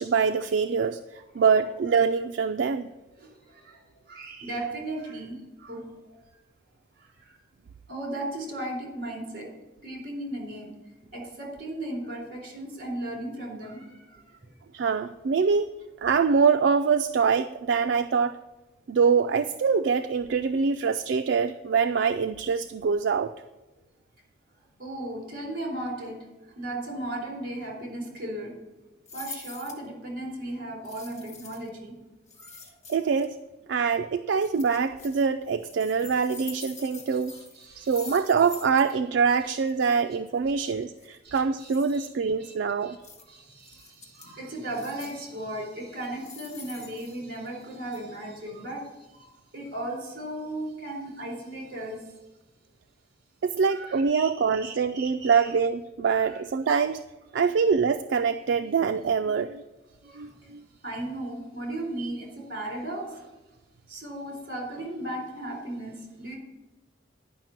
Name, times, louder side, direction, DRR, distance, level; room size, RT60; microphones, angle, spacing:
voice 1, 0.0-2.9 14.7-15.7 16.0-18.4 18.9-23.3 32.9-33.4 33.7-37.3 37.8-43.0 53.4-57.0 57.3-59.6 60.2-60.6, right 5 dB, 75° right, 9 dB, 0.4 m, -24 dB
voice 2, 3.2-6.2 7.0-7.4 7.9-9.5 9.8-10.7 11.1-14.5 24.8-28.6 29.1-31.9 32.4-32.7 37.3-38.2 40.6-40.7 41.2-42.1 42.4-42.5 42.8-43.0 43.3-52.1 53.7-55.5 56.2-56.4 60.0-60.5 60.8-63.3 63.9-66.4, right 1 dB, 55° right, 0 dB, 3.9 m, -36 dB
sound 1, 29.1-29.9 30.8-31.7 32.3-33.3 34.4-35.3 35.6-38.9 39.2-39.3 39.6-39.9 41.0-42.0 43.0-43.2 43.6-44.3 44.7-45.3 46.0-47.6 47.9-48.0, left 4 dB, 40° left, 1.5 m, -45 dB
11.0 x 5.8 x 7.4 m, 1.1 s
head